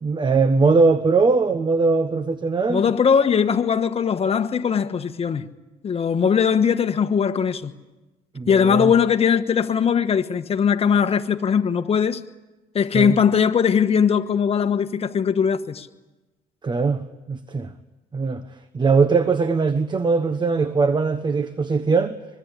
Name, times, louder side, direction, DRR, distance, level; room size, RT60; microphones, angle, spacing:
voice 1, 0.0-2.8 8.3-8.9 12.9-13.2 16.6-17.0 17.3-17.7 18.1-18.4 18.7-22.2, right 4 dB, 25° right, 1.1 m, -20 dB
voice 2, 2.7-5.5 5.8-7.7 8.5-12.2 12.7-15.9, left 7 dB, 35° left, 1.3 m, -20 dB
24.5 x 23.0 x 8.3 m
cardioid pair, 110°, 17 cm